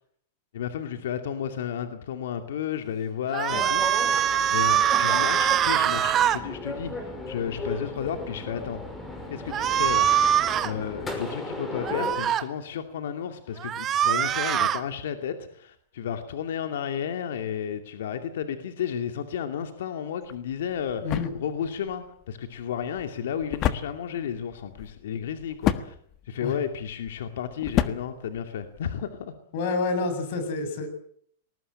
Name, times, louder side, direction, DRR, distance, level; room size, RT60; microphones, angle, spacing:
voice 1, 0.5-3.8 4.5-8.8 9.3-10.3 10.6-21.0 21.4-25.9 26.3-29.3, left 8 dB, 80° left, 7 dB, 2.5 m, -32 dB
sound 1, 3.3-6.4 9.5-10.7 11.8-12.4 13.6-14.8, right 10 dB, 25° right, 1.4 m, -23 dB
sound 2, 3.5-12.2, left 2 dB, 15° left, 5.9 m, -36 dB
sound 3, 20.2-29.1, left 11 dB, 30° left, 1.5 m, -32 dB
voice 2, 29.5-30.9, left 3 dB, 55° left, 9 dB, 7.3 m, -28 dB
20.5 x 19.5 x 8.9 m, 0.62 s
supercardioid pair, 155°, 0 cm